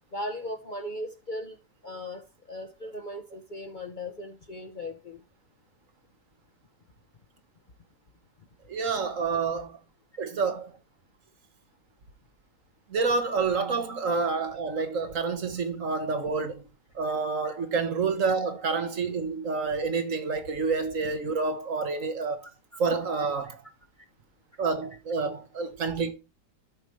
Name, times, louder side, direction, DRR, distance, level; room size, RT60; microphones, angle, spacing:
voice 1, 0.1-1.6 1.8-5.2 17.4-17.6 22.4-22.8 23.4-23.5, left 1 dB, 35° left, 0.9 m, -38 dB
voice 2, 8.7-9.8 10.2-10.7 12.9-16.7 16.9-22.4 22.8-23.6 24.6-26.1, right 4 dB, 55° right, 1.4 m, -28 dB
12.5 x 5.0 x 3.1 m
omnidirectional pair, 1.7 m